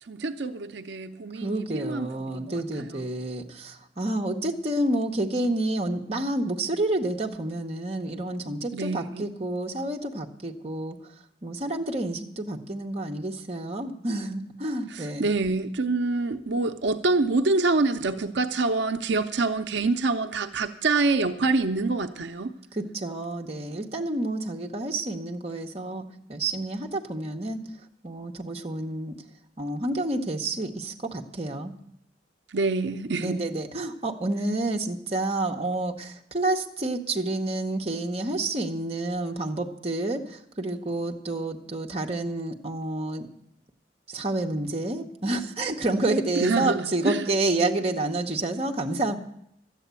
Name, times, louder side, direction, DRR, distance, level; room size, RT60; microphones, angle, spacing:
voice 1, 0.0-3.1 8.7-9.3 14.9-22.5 32.5-33.4 46.4-47.3, right 3 dB, 80° right, 7 dB, 0.7 m, -26 dB
voice 2, 1.4-11.0 11.4-15.3 22.9-27.7 28.0-29.2 29.6-31.7 33.2-43.3 44.1-49.2, right 2 dB, 35° right, 1 dB, 1.0 m, -29 dB
12.5 x 8.3 x 8.2 m, 0.75 s
head